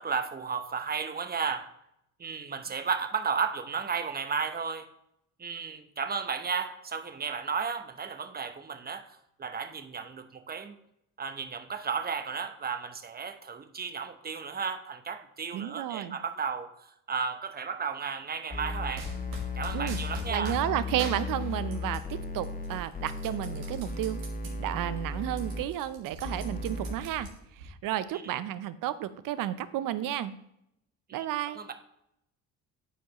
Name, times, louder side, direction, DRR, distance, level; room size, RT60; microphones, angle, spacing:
voice 1, 0.0-1.7 2.2-4.9 5.4-10.8 11.2-19.1 19.5-20.6 28.1-28.4 31.1-31.3 31.6-31.7, right 6 dB, 25° right, 7 dB, 0.8 m, -34 dB
voice 2, 15.5-16.2 19.7-20.0 20.3-27.3 27.6-30.4 31.1-31.6, right 12 dB, 55° right, 15 dB, 0.6 m, -32 dB
sound 1, 18.5-25.6 26.2-27.0, left 3 dB, 20° left, 0.8 m, -35 dB
sound 2, 18.9-20.6 21.0-22.1 22.4-24.5 24.9-25.0 25.3-27.7, right 2 dB, 90° right, 1.3 m, -43 dB
10.0 x 4.6 x 3.0 m, 0.79 s
hypercardioid pair, 55°, 40 cm